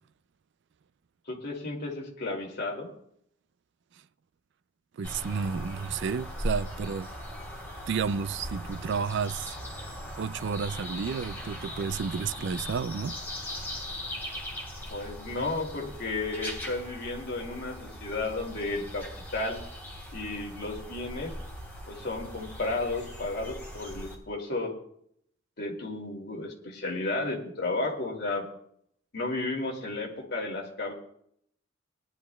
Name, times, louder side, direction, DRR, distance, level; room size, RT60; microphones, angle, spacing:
voice 1, 1.3-2.9 14.9-19.1 19.3-19.6 20.1-21.3 21.9-24.7 25.6-28.4 29.1-30.9, left 2 dB, 50° left, 2.5 m, -33 dB
sound 1, 5.0-24.2, equal, 10° left, 3.5 m, -39 dB
voice 2, 5.0-7.1 7.9-9.6 10.2-13.2, right 6 dB, 55° right, 0.3 m, -31 dB
21.0 x 11.5 x 2.3 m
head